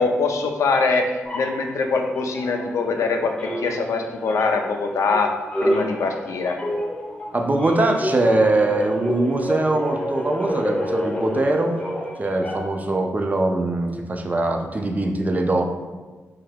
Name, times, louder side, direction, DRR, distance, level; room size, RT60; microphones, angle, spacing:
voice 1, 0.0-5.3 5.6-6.6, left 4 dB, 75° left, 3 dB, 0.4 m, -23 dB
sound 1, 1.2-3.1 3.4-12.9, equal, 20° left, 0.8 m, -29 dB
voice 2, 7.3-11.8 12.2-15.6, right 2 dB, 30° right, 4 dB, 0.4 m, -22 dB
2.7 x 2.3 x 3.4 m, 1.3 s
cardioid pair, 55°, 5 cm